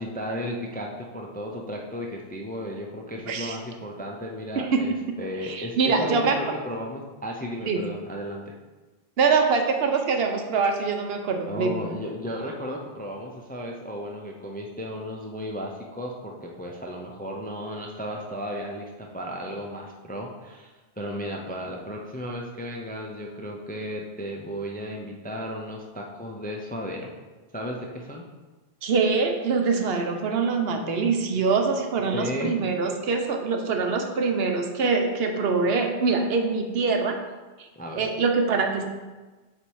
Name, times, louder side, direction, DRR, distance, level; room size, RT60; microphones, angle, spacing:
voice 1, 0.0-8.5 11.5-27.1 27.5-28.2 32.1-32.6 37.8-38.1, equal, 15° left, 0 dB, 0.4 m, -34 dB
voice 2, 5.4-6.4 7.6-7.8 9.2-11.8 28.8-37.2 37.6-37.7 38.0-38.8, right 4 dB, 70° right, 4 dB, 0.9 m, -24 dB
7.0 x 3.4 x 4.6 m, 1.2 s
omnidirectional pair, 1.1 m